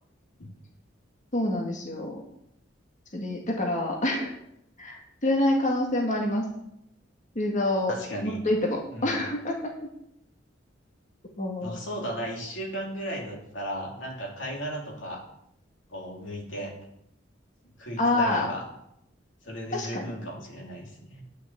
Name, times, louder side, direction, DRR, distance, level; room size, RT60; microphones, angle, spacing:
voice 1, 1.3-2.2 3.1-4.3 4.8-6.5 7.4-7.9 8.2-9.7 11.4-11.8 18.0-18.5 19.7-20.1, left 1 dB, 40° left, 0 dB, 1.9 m, -27 dB
voice 2, 7.9-8.4 8.9-9.3 11.6-15.2 15.9-16.7 17.8-18.6 19.4-21.2, equal, 85° left, 0 dB, 2.9 m, -35 dB
10.0 x 6.2 x 8.6 m, 0.77 s
head